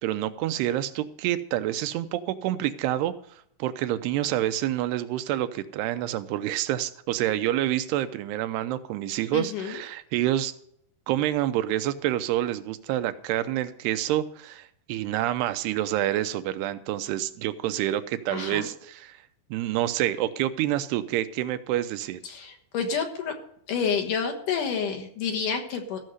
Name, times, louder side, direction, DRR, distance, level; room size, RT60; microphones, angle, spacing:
voice 1, 0.0-3.1 3.6-10.5 11.1-19.2 19.5-22.2, right 13 dB, 85° right, 11 dB, 2.8 m, -27 dB
voice 2, 9.3-9.8 18.3-18.7 22.2-23.3 23.7-26.0, left 6 dB, 60° left, 4 dB, 2.5 m, -29 dB
15.0 x 6.5 x 7.9 m, 0.69 s
omnidirectional pair, 4.6 m